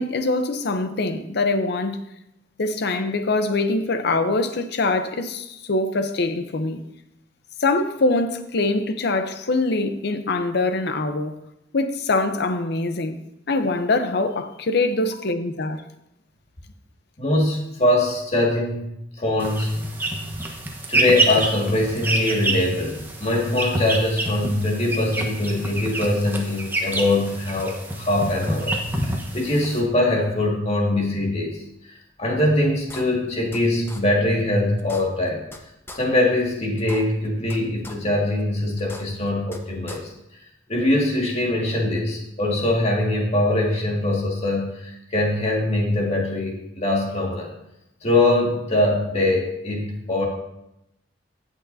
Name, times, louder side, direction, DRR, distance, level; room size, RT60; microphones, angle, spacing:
voice 1, 0.0-2.0 2.6-6.8 7.6-11.4 11.7-13.2 13.5-15.8, left 2 dB, 60° left, 0.7 m, -23 dB
voice 2, 17.2-18.8 19.2-19.9 20.9-28.7 29.0-31.6 32.2-35.4 35.9-40.1 40.7-47.5 48.0-50.3, left 1 dB, 35° left, 2.0 m, -22 dB
sound 1, 19.4-29.8, right 1 dB, 10° right, 1.1 m, -27 dB
sound 2, 32.4-32.5 32.9-33.6 33.9-34.0 34.4-34.5 34.8-35.6 35.9-36.0 36.4-36.5 36.8-37.6 37.8-38.0 38.4-38.5 38.8-39.6 39.9-40.0, left 1 dB, 10° left, 0.8 m, -40 dB
17.0 x 6.5 x 2.7 m
head